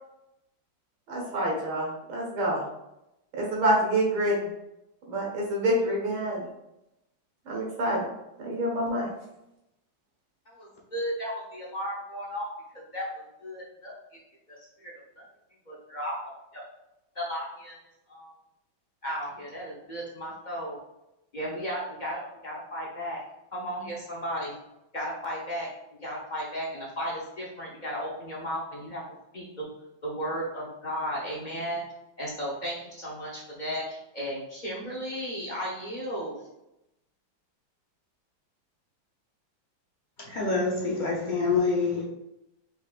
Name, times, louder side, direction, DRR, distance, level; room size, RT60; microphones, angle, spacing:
voice 1, 1.1-2.6 3.3-4.5 5.1-6.4 7.5-8.1 8.4-9.1, right 1 dB, 90° right, -3 dB, 2.3 m, -27 dB
voice 2, 10.5-12.5 12.7-13.9 14.5-15.2 15.7-16.6 17.1-17.7 18.1-18.3 19.0-20.8 21.3-23.2 23.5-24.6 24.9-25.7 26.0-29.0 29.3-29.7 30.0-31.8 32.2-36.3, equal, 35° left, -5 dB, 0.7 m, -35 dB
voice 3, 40.2-42.0, left 4 dB, 70° left, -3 dB, 0.4 m, -26 dB
5.2 x 4.2 x 2.4 m, 0.89 s
omnidirectional pair, 2.1 m